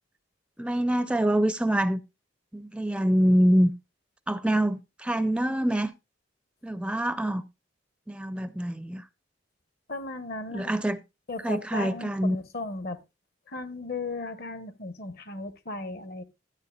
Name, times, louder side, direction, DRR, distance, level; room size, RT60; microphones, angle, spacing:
voice 1, 0.6-2.0 2.5-3.7 4.3-5.9 6.6-7.4 8.1-9.0 10.5-11.0 11.4-12.4, right 1 dB, 5° right, 0.4 m, -25 dB
voice 2, 9.9-10.7 11.3-13.0 13.5-16.2, left 3 dB, 55° left, 1.0 m, -36 dB
13.0 x 9.4 x 2.3 m
head